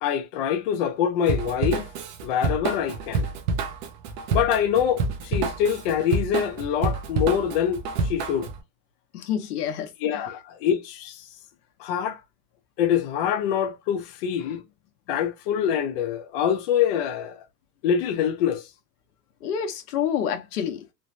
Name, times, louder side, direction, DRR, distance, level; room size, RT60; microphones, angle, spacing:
voice 1, 0.0-1.9 2.2-3.2 4.3-8.5 10.0-11.2 11.8-12.2 12.8-14.6 15.1-17.4 17.8-18.7, left 9 dB, 40° left, 0.5 m, -25 dB
Drum kit / Drum, 1.3-8.6, right 4 dB, 30° right, 0.4 m, -28 dB
voice 2, 9.1-9.9 14.4-14.5 19.4-20.8, left 8 dB, 70° left, 1.0 m, -28 dB
3.2 x 2.1 x 2.5 m
supercardioid pair, 140°, 48 cm